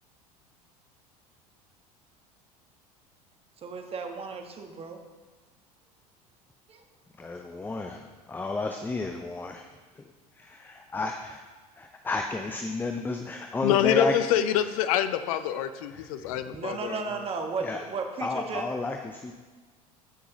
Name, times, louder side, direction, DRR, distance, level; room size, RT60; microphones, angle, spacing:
voice 1, 3.6-5.0 6.7-6.8 7.5-7.6 16.5-18.6, right 4 dB, 30° right, 4 dB, 1.3 m, -35 dB
voice 2, 7.2-9.7 9.9-10.0 10.3-11.4 11.8-14.1 15.9-16.4 17.6-17.8 18.2-19.3, left 3 dB, 10° left, 4 dB, 0.6 m, -32 dB
voice 3, 13.6-17.3, left 10 dB, 60° left, 12 dB, 0.6 m, -26 dB
14.5 x 6.1 x 3.1 m, 1.4 s
figure-of-eight pair, 75°, 20 cm